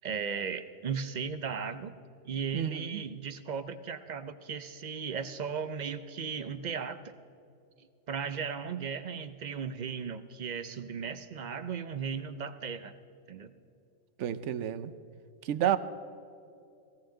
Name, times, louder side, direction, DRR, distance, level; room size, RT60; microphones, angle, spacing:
voice 1, 0.0-1.9 2.2-7.1 8.1-12.9 13.3-13.5, right 6 dB, 55° right, 11 dB, 0.5 m, -36 dB
voice 2, 2.5-3.0 14.2-14.9 15.4-15.8, right 11 dB, 75° right, 13 dB, 0.9 m, -30 dB
19.5 x 16.5 x 3.8 m, 2.6 s
omnidirectional pair, 1.2 m